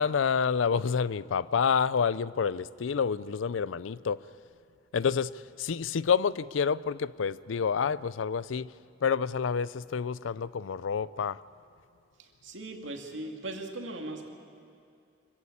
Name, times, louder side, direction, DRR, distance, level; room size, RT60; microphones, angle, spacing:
voice 1, 0.0-4.2 4.9-5.3 5.6-8.7 9.0-11.4, left 6 dB, 75° left, 0.4 m, -28 dB
voice 2, 12.2-14.3, right 2 dB, 70° right, 2.4 m, -39 dB
25.0 x 15.5 x 8.6 m
head